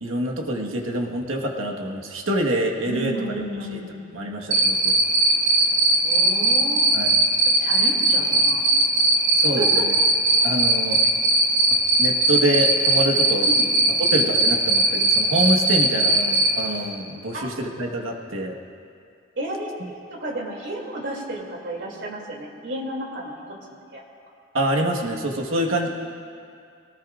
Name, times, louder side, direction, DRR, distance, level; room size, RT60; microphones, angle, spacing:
voice 1, 0.0-3.1 3.7-3.8 4.1-5.0 6.9-7.1 9.4-9.9 10.4-11.0 12.0-13.5 14.1-18.6 19.8-19.9 24.5-25.9, right 1 dB, 85° right, 0 dB, 1.6 m, -26 dB
voice 2, 2.8-3.9 6.0-6.9 7.6-8.6 9.5-9.8 13.5-13.6 17.3-17.5 19.4-23.3 23.9-24.0, right 1 dB, 60° right, -2 dB, 2.9 m, -32 dB
Cricket, 4.5-16.5, right 3 dB, 40° right, 1.7 m, -18 dB
22.5 x 18.5 x 2.6 m, 2.3 s
head